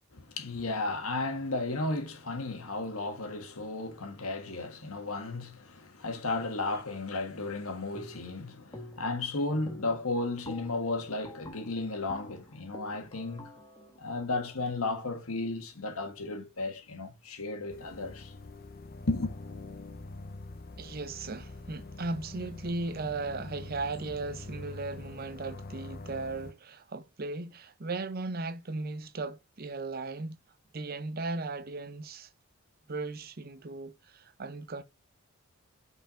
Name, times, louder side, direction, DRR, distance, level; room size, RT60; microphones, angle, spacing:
voice 1, 0.1-13.5 14.0-18.3 19.1-19.4, left 2 dB, 90° left, 1.6 m, -34 dB
sound 1, 7.9-8.4 8.7-9.2 9.5-15.4, left 1 dB, 20° left, 1.4 m, -49 dB
sound 2, 17.7-26.5, left 2 dB, 45° left, 0.6 m, -45 dB
voice 2, 20.8-30.4 30.7-32.3 32.9-34.8, right 3 dB, 45° right, 0.6 m, -37 dB
5.7 x 4.6 x 4.9 m
head